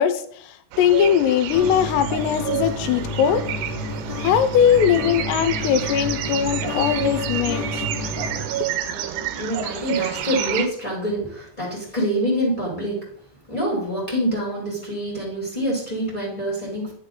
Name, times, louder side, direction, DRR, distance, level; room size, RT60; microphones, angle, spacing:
voice 1, 0.0-3.4 4.2-7.6, left 9 dB, 85° left, 11 dB, 2.8 m, -20 dB
sound 1, 0.7-10.7, right 11 dB, 85° right, 2.9 m, -29 dB
sound 2, 1.5-8.4, left 2 dB, 45° left, 1.3 m, -30 dB
voice 2, 8.9-13.1 13.5-16.9, equal, 15° left, -5 dB, 1.3 m, -26 dB
10.0 x 6.5 x 3.8 m, 0.63 s
omnidirectional pair, 4.9 m